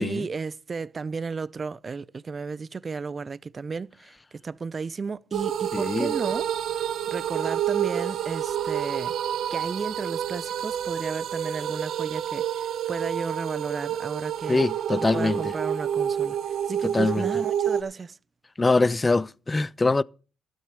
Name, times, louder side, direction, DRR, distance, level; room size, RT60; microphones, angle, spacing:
voice 1, 0.0-6.5 7.1-9.1 9.5-14.6 15.1-16.4 16.7-18.2, right 4 dB, 35° right, 0.5 m, -33 dB
sound 1, 5.3-17.8, right 9 dB, 70° right, 1.0 m, -28 dB
voice 2, 5.7-6.1 14.5-15.4 16.9-17.3 18.6-20.0, left 3 dB, 20° left, 0.5 m, -23 dB
12.5 x 7.9 x 6.7 m
cardioid pair, 90°, 0 cm